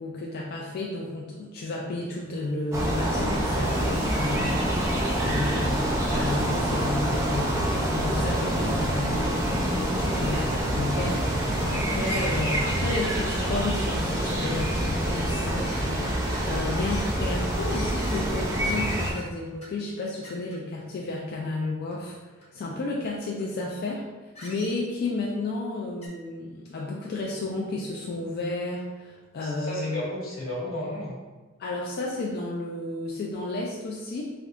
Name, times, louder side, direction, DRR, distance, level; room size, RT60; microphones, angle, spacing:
voice 1, 0.0-4.6 5.3-8.4 8.7-30.0 31.6-34.3, left 2 dB, 50° left, -3 dB, 0.3 m, -32 dB
Toilet flush, 2.2-13.2, right 1 dB, 85° right, 0.6 m, -44 dB
sound 1, 2.7-19.1, right 1 dB, 15° right, 0.5 m, -26 dB
voice 2, 5.1-5.5 8.0-9.0 9.9-10.3 29.4-31.2, left 1 dB, 85° left, -5 dB, 1.1 m, -34 dB
sound 2, 12.0-12.8 13.0-13.1 13.6-13.7 14.0-14.6 15.0-15.3 15.7-15.9 16.3-16.5 16.9-17.1 17.7-18.3 18.6-18.8 19.1-19.3 19.6-19.7 20.0-20.6 21.9-22.1 22.4-22.5 23.4-23.5 24.4-25.1 26.0-26.1, equal, 30° left, 0.8 m, -44 dB
3.4 x 2.7 x 2.4 m, 1.3 s
head